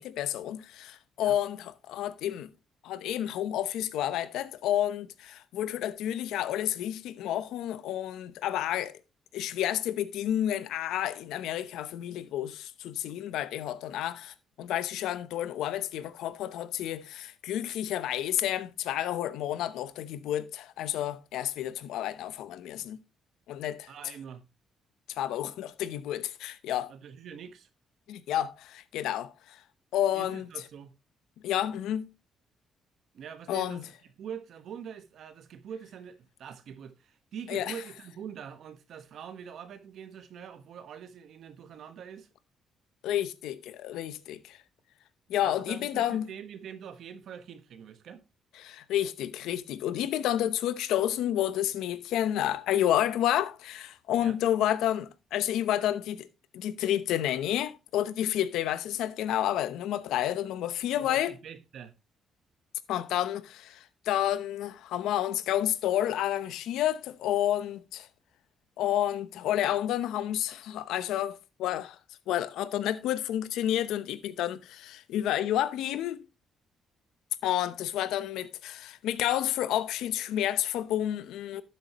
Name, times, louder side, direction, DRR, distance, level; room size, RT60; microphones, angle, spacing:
voice 1, 0.0-2.5 2.8-9.0 9.3-23.0 23.5-23.9 25.2-26.9 28.1-29.6 29.9-30.5 31.4-32.1 33.5-33.8 37.5-37.8 43.0-44.6 45.3-46.3 48.6-56.3 56.5-61.3 62.9-68.1 68.8-72.0 72.3-76.2 77.4-81.6, left 12 dB, 90° left, 0.8 m, -30 dB
voice 2, 23.9-24.4 26.9-27.7 30.1-30.9 33.1-33.8 34.2-42.3 45.4-48.2 54.2-54.4 61.0-61.9, right 8 dB, 70° right, 1.3 m, -44 dB
12.0 x 8.9 x 3.0 m
cardioid pair, 90°, 0 cm